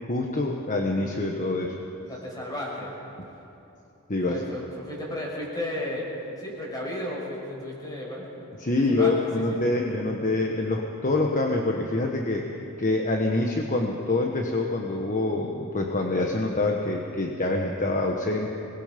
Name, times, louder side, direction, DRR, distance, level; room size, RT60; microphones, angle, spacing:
voice 1, 0.1-1.8 4.1-4.4 8.6-12.5 12.8-18.6, left 2 dB, 40° left, 1 dB, 1.4 m, -26 dB
voice 2, 2.1-3.0 4.2-6.1 6.4-8.3 8.8-9.1 9.5-9.6, left 1 dB, 20° left, -3 dB, 5.8 m, -34 dB
25.0 x 20.5 x 5.3 m, 2.8 s
head